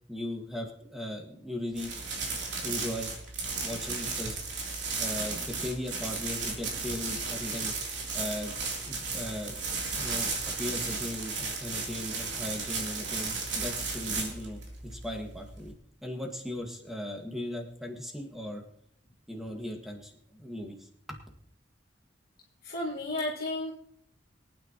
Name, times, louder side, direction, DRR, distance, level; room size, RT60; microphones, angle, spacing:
voice 1, 0.1-1.9 2.6-3.1 3.6-4.4 5.0-7.7 8.1-8.5 8.8-9.6 9.9-15.7 16.0-18.6 19.3-21.2, left 1 dB, ahead, 1 dB, 1.8 m, -38 dB
sound 1, 1.7-15.7, right 4 dB, 75° right, 3.1 m, -34 dB
voice 2, 22.6-23.7, left 1 dB, 55° left, -4 dB, 1.8 m, -32 dB
23.5 x 9.3 x 3.0 m, 0.68 s
head